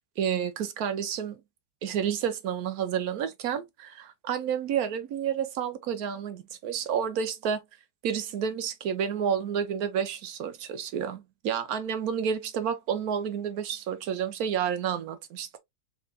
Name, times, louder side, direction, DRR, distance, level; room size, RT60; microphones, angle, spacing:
voice 1, 0.2-1.4 1.8-7.6 8.0-15.6, right 8 dB, 70° right, 1.1 m, -30 dB
3.7 x 3.4 x 2.3 m
omnidirectional pair, 1.7 m